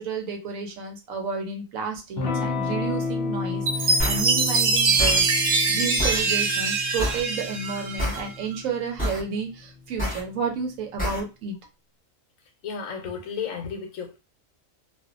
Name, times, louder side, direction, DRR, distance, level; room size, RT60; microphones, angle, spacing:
voice 1, 0.0-11.6, right 5 dB, 85° right, 1.1 m, -31 dB
Electric guitar / Strum, 2.2-10.5, left 4 dB, 60° left, 0.8 m, -32 dB
Chime, 3.7-8.3, right 4 dB, 65° right, 0.5 m, -23 dB
sound 1, 4.0-4.2 5.0-5.2 6.0-6.2 7.0-7.2 8.0-8.2 9.0-9.2 10.0-10.2 11.0-11.2, equal, 5° left, 1.1 m, -27 dB
voice 2, 12.6-14.2, left 6 dB, 80° left, 1.0 m, -33 dB
2.6 x 2.3 x 2.4 m
omnidirectional pair, 1.4 m